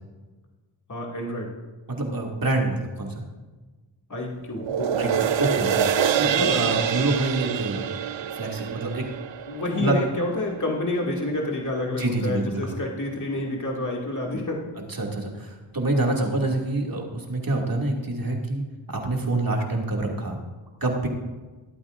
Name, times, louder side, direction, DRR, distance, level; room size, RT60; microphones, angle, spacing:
voice 1, 0.9-1.5 4.1-5.3 6.2-6.5 9.5-14.6, left 2 dB, 35° left, -2 dB, 2.5 m, -29 dB
voice 2, 1.9-3.2 5.0-5.1 5.4-7.9 8.3-9.1 9.8-10.0 12.0-12.7 14.9-18.6 18.9-20.4 20.8-21.1, right 2 dB, 45° right, 0 dB, 2.6 m, -26 dB
sound 1, 4.6-11.2 11.6-11.7, right 8 dB, 65° right, 0.7 m, -26 dB
24.0 x 8.6 x 2.6 m, 1.3 s
cardioid pair, 55°, 50 cm